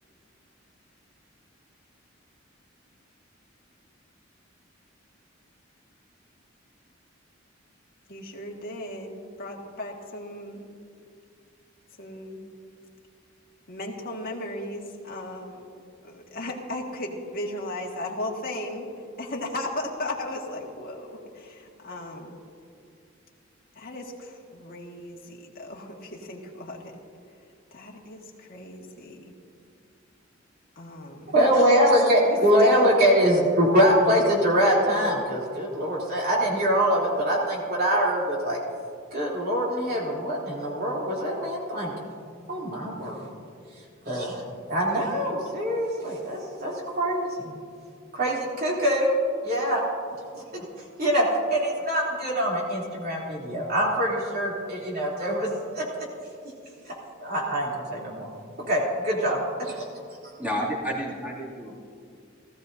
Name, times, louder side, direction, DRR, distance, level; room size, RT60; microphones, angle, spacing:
voice 1, 8.1-10.7 12.0-12.5 13.7-15.6 16.0-22.4 23.8-26.9 27.7-29.3 30.8-31.3 32.2-32.9 44.9-45.4, left 1 dB, 50° left, -1 dB, 1.8 m, -36 dB
voice 2, 31.3-38.6 39.1-41.9 42.5-43.2 44.0-44.4 44.7-47.5 48.1-49.1 49.4-49.8 50.5-50.6 51.0-55.5 55.7-55.8 57.2-58.3 58.7-59.8, equal, 50° right, -4 dB, 3.1 m, -24 dB
voice 3, 60.4-61.8, equal, 5° right, -5 dB, 2.5 m, -30 dB
18.5 x 14.0 x 2.7 m, 2.3 s
head